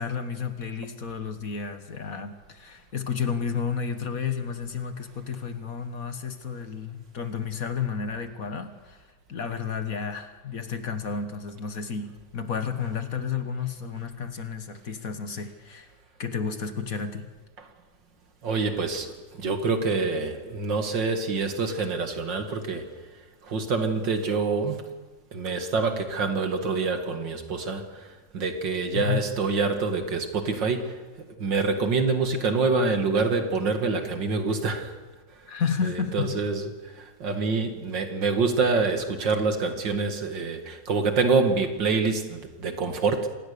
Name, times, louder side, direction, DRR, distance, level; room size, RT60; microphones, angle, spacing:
voice 1, 0.0-9.0 9.3-15.9 16.2-17.3 28.9-29.2 35.5-36.4, left 6 dB, 50° left, 8 dB, 1.8 m, -31 dB
voice 2, 18.4-22.9 23.4-24.8 25.3-31.0 31.4-34.9 35.8-43.3, right 4 dB, 80° right, 6 dB, 2.7 m, -26 dB
25.5 x 19.5 x 6.9 m, 1.3 s
omnidirectional pair, 1.9 m